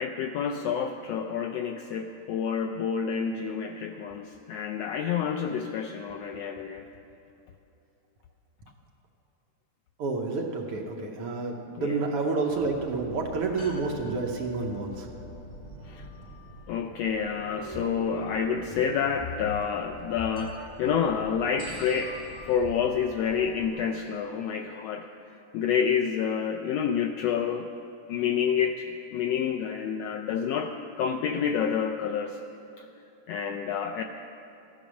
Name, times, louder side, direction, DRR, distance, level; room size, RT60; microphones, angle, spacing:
voice 1, 0.0-6.9 11.8-12.0 15.8-16.1 16.7-22.2 22.4-25.1 25.5-27.7 28.1-28.8 29.1-32.4 32.8-32.9 33.3-34.0, left 7 dB, 80° left, 4 dB, 1.5 m, -28 dB
voice 2, 10.0-15.1, right 3 dB, 65° right, 1 dB, 1.7 m, -29 dB
sound 1, 12.5-23.7, left 1 dB, 5° left, 2.7 m, -43 dB
14.0 x 10.5 x 6.2 m, 3.0 s
omnidirectional pair, 3.4 m